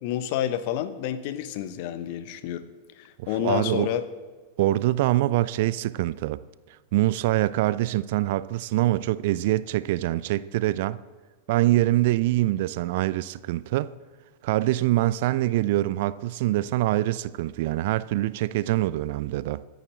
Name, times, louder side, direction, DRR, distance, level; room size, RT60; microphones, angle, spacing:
voice 1, 0.0-2.6 3.0-4.1, left 11 dB, 45° left, 1.0 m, -29 dB
voice 2, 3.2-3.9 4.6-6.4 6.9-11.0 11.5-13.9 14.4-19.6, right 16 dB, 50° right, 0.5 m, -24 dB
24.0 x 10.5 x 3.9 m
figure-of-eight pair, 90°, 0 cm